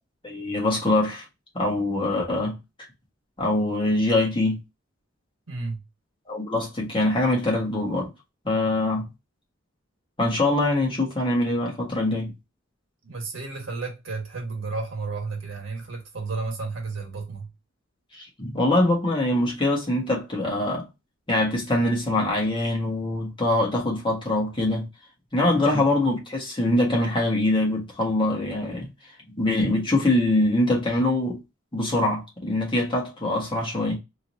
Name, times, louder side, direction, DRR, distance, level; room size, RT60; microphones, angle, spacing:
voice 1, 0.2-1.2 1.5-2.6 3.4-4.6 6.3-8.1 8.4-9.1 10.2-12.3 18.1-20.9 21.3-24.9 25.3-28.9 29.4-31.4 31.7-34.0, left 2 dB, 25° left, 1.5 m, -23 dB
voice 2, 5.5-5.8 13.0-17.5 25.7-25.8, right 3 dB, 90° right, 1.4 m, -32 dB
3.7 x 3.1 x 2.7 m
head